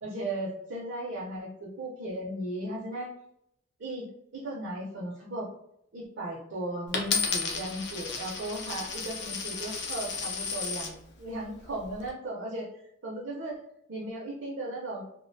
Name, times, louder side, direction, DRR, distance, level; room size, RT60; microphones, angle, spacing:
voice 1, 0.0-3.1 3.8-5.5 5.9-12.7 13.0-13.6 13.9-15.0, right 1 dB, 65° right, -4 dB, 0.5 m, -36 dB
Coin (dropping), 6.9-10.9 11.6-12.1, left 5 dB, 60° left, 0.5 m, -33 dB
2.3 x 2.1 x 2.6 m, 0.75 s
head